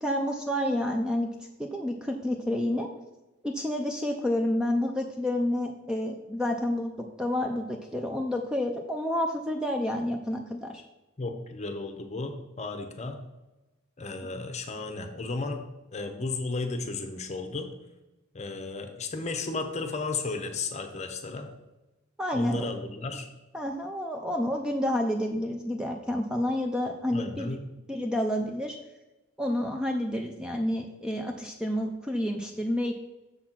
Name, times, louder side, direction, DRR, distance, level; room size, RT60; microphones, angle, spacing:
voice 1, 0.0-1.3 1.6-2.9 3.4-10.8 22.2-22.7 23.5-27.6 27.9-28.8 29.4-32.9, left 1 dB, 5° right, 2 dB, 0.4 m, -29 dB
voice 2, 11.2-13.2 14.0-15.6 15.9-17.7 18.3-21.5 22.3-23.3 27.1-27.7, left 3 dB, 35° left, 6 dB, 0.8 m, -34 dB
7.0 x 4.2 x 5.8 m, 1.1 s
head